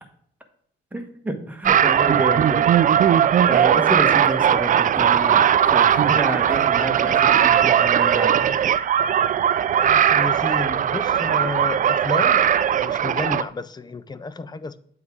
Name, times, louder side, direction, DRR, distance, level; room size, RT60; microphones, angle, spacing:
voice 1, 0.9-2.8 3.5-8.5, right 1 dB, 10° right, 1.2 m, -29 dB
sound 1, 1.7-13.4, right 9 dB, 40° right, 0.4 m, -18 dB
voice 2, 9.8-12.4 12.8-14.8, left 3 dB, 20° left, 0.4 m, -31 dB
8.0 x 3.7 x 4.5 m
cardioid pair, 90°, 20 cm